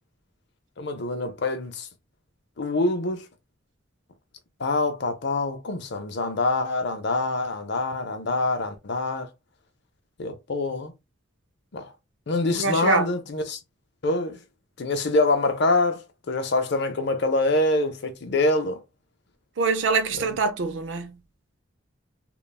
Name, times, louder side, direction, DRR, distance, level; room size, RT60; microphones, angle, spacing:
voice 1, 0.8-1.9 2.6-3.3 4.6-9.3 10.2-10.9 11.7-11.9 12.3-13.6 14.0-14.4 14.8-18.8 20.1-20.3, left 2 dB, 60° left, 0.6 m, -25 dB
voice 2, 12.5-13.1 19.6-21.1, right 4 dB, 65° right, 0.5 m, -24 dB
3.2 x 2.2 x 2.2 m
head